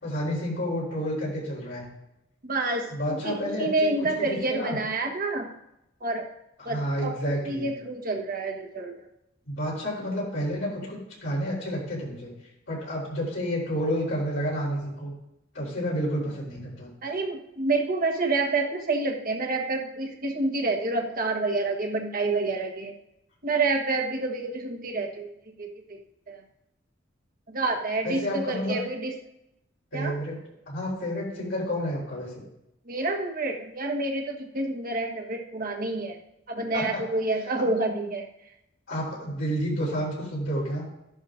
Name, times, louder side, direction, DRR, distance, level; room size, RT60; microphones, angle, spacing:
voice 1, 0.0-1.8 2.9-3.9 4.2-4.8 6.6-7.7 9.5-12.3 12.7-15.1 15.5-16.9 28.0-28.8 29.9-30.4 30.7-32.4 36.7-37.0 37.6-37.7 38.9-40.8, equal, 70° left, -6 dB, 3.8 m, -30 dB
voice 2, 2.5-5.5 6.0-6.3 6.6-9.1 17.0-22.9 23.4-25.3 25.6-26.0 26.3-26.4 27.5-29.1 29.9-30.2 32.9-36.2 36.5-38.2, right 3 dB, 50° right, 3 dB, 1.3 m, -28 dB
13.5 x 11.0 x 2.5 m, 0.85 s
head